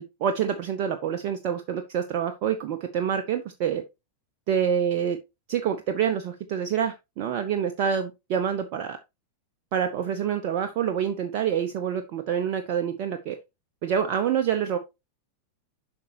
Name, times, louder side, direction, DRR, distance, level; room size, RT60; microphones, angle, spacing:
voice 1, 0.0-3.8 4.5-5.2 5.5-9.0 9.7-13.4 13.8-14.8, right 8 dB, 45° right, 6 dB, 0.8 m, -27 dB
7.8 x 5.3 x 3.0 m, 0.23 s
figure-of-eight pair, 90°, 0 cm